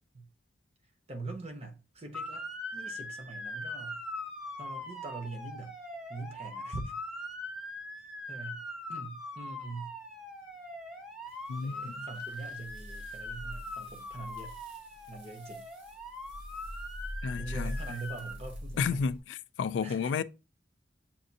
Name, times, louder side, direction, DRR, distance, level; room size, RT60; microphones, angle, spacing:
voice 1, 1.1-4.0 4.6-5.8 6.1-6.9 8.3-9.9 11.6-14.5 15.1-15.7 17.4-19.1 19.8-20.1, right 2 dB, 35° right, 0.8 m, -43 dB
Motor vehicle (road) / Siren, 2.1-18.3, left 1 dB, ahead, 0.7 m, -42 dB
sound 1, 11.3-19.2, equal, 75° right, 1.7 m, -44 dB
voice 2, 11.5-12.1 17.2-17.8 18.8-20.2, left 5 dB, 75° left, 0.3 m, -32 dB
7.2 x 2.5 x 2.7 m
head